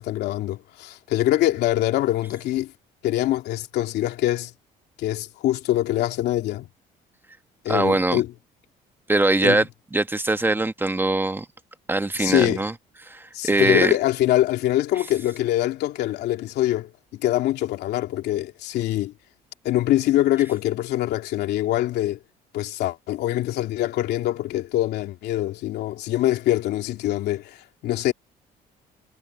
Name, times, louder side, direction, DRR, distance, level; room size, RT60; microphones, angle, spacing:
voice 1, 0.0-2.7 3.0-4.5 5.0-6.7 7.6-8.3 9.4-9.6 12.1-12.6 13.3-19.1 19.6-22.2 22.5-28.1, left 14 dB, 80° left, 3.1 m, -24 dB
voice 2, 7.7-8.2 9.1-11.5 11.9-12.7 13.0-13.9, right 2 dB, 10° right, 1.1 m, -22 dB
cardioid pair, 110°, 17 cm